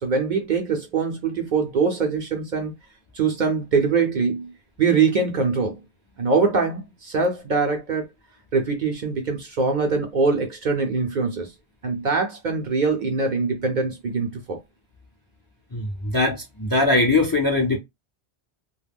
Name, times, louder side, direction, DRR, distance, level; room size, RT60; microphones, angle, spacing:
voice 1, 0.0-2.7 3.1-4.5 4.8-5.8 6.2-8.1 8.5-11.5 11.8-14.6, right 4 dB, 55° right, 0.6 m, -23 dB
voice 2, 15.7-17.8, left 2 dB, 30° left, 0.5 m, -21 dB
2.2 x 2.1 x 3.4 m
omnidirectional pair, 1.1 m